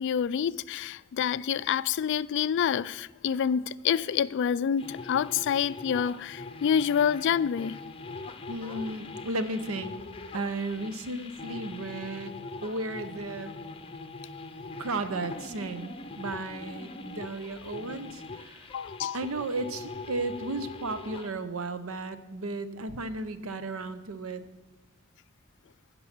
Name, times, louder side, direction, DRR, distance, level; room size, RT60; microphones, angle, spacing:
voice 1, 0.0-7.8 18.7-19.2, left 8 dB, 60° left, 0.3 m, -27 dB
sound 1, 4.8-21.3, left 3 dB, 25° left, 0.6 m, -42 dB
voice 2, 8.5-10.0 10.3-13.6 14.8-18.7 19.1-24.4, right 2 dB, 75° right, 0.8 m, -34 dB
10.5 x 5.5 x 7.1 m
head